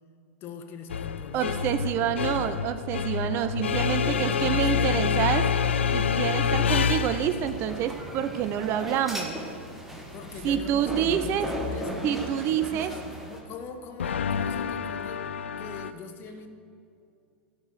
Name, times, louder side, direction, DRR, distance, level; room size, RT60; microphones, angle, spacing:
voice 1, 0.4-2.6 3.8-5.7 10.1-12.1 12.5-15.3 15.6-16.5, left 5 dB, 35° left, 6 dB, 1.0 m, -42 dB
sound 1, 0.9-7.5 14.0-15.9, left 7 dB, 75° left, 0.4 m, -27 dB
voice 2, 1.3-5.5 5.9-9.4 10.4-11.5 12.0-12.9, right 10 dB, 40° right, 11 dB, 0.5 m, -27 dB
sound 2, 3.6-13.4, equal, 5° right, 1.4 m, -38 dB
11.5 x 4.9 x 7.3 m, 2.6 s
figure-of-eight pair, 95°, 6 cm